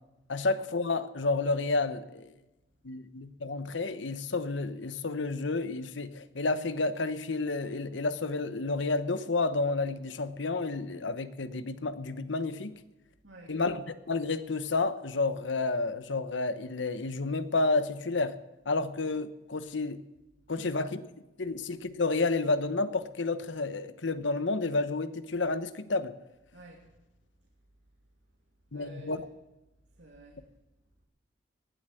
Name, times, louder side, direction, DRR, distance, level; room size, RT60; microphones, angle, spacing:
voice 1, 0.3-2.3 2.8-12.8 13.5-18.4 18.7-20.0 20.5-21.0 21.4-26.1 28.7-29.2, left 3 dB, 80° left, 12 dB, 1.0 m, -30 dB
voice 2, 13.2-13.6 20.5-20.8 26.5-26.9 28.7-29.2 29.9-30.5, right 2 dB, 90° right, -1 dB, 2.6 m, -51 dB
19.0 x 7.9 x 7.8 m, 0.99 s
head